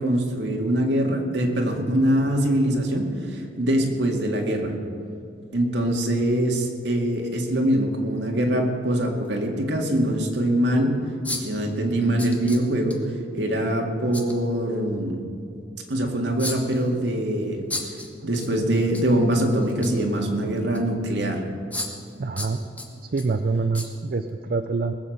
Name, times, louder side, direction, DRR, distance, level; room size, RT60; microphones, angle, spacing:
voice 1, 0.0-4.7 5.5-11.0 11.3-13.0 13.3-15.2 15.9-17.7 18.2-21.4, right 1 dB, 80° right, 1 dB, 2.1 m, -23 dB
sound 1, 7.3-7.4 9.2-9.3 10.0-10.1 11.2-11.6 12.2-13.0 14.1-14.4 16.4-16.9 17.7-18.5 18.8-19.0 19.4-20.1 20.7-20.8 21.7-22.1 22.4-23.3 23.7-23.9 24.3-24.4, left 2 dB, 10° left, 1.5 m, -33 dB
voice 2, 22.2-22.6 23.1-24.9, right 4 dB, 55° right, 8 dB, 0.5 m, -25 dB
20.0 x 7.7 x 6.6 m, 2.6 s
head